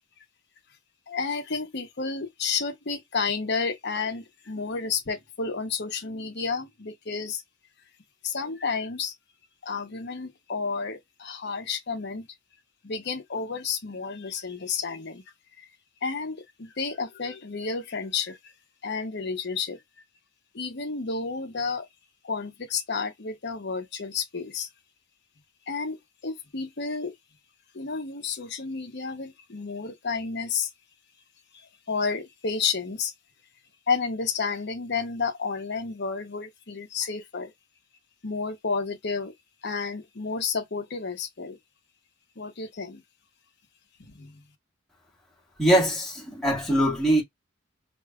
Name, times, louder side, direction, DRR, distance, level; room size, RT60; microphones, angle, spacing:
voice 1, 1.1-7.4 8.2-9.1 9.6-12.3 12.8-15.2 15.6-15.7 16.0-18.5 18.8-19.8 20.5-21.9 22.2-24.7 25.7-27.1 27.7-30.7 31.9-33.1 33.9-37.5 38.2-39.3 39.6-41.6 42.4-43.0 44.0-44.4, left 5 dB, 60° left, 0.9 m, -31 dB
voice 2, 45.6-47.2, right 1 dB, ahead, 1.8 m, -22 dB
4.9 x 2.6 x 2.3 m
head